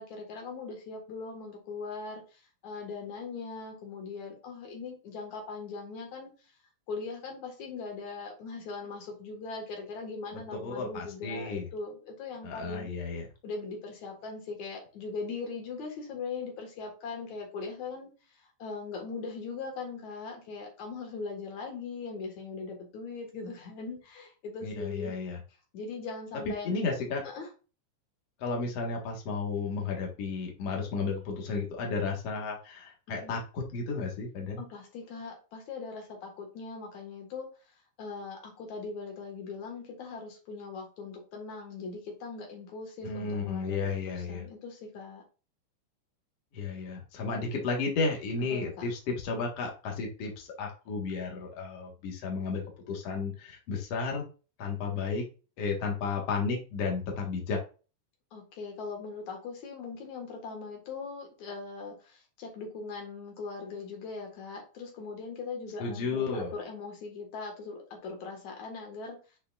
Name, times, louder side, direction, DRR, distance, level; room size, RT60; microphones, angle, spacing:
voice 1, 0.0-6.3 6.9-12.9 13.4-18.1 18.4-25.1 25.7-27.0 27.2-27.5 33.1-33.4 34.6-37.5 38.0-45.2 48.5-48.7 58.3-69.2, left 4 dB, 60° left, 2 dB, 2.1 m, -40 dB
voice 2, 10.6-11.7 12.4-13.3 24.6-25.4 26.6-27.2 28.4-34.6 43.0-44.4 46.5-52.6 52.9-54.2 54.6-55.2 55.6-57.6 65.8-66.5, left 4 dB, 90° left, 0 dB, 1.3 m, -33 dB
8.3 x 6.6 x 2.5 m, 0.34 s
omnidirectional pair, 5.7 m